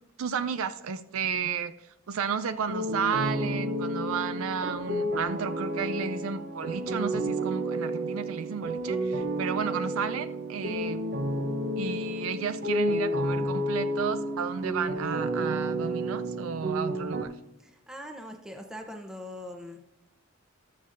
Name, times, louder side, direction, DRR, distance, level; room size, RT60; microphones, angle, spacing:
voice 1, 0.2-1.7 2.1-11.0 11.8-17.3, right 6 dB, 80° right, 11 dB, 0.4 m, -32 dB
sound 1, 2.7-17.2, right 1 dB, 50° right, 0.8 m, -31 dB
voice 2, 17.6-19.8, left 1 dB, 5° right, 3 dB, 0.7 m, -42 dB
18.5 x 6.6 x 2.5 m, 0.90 s
head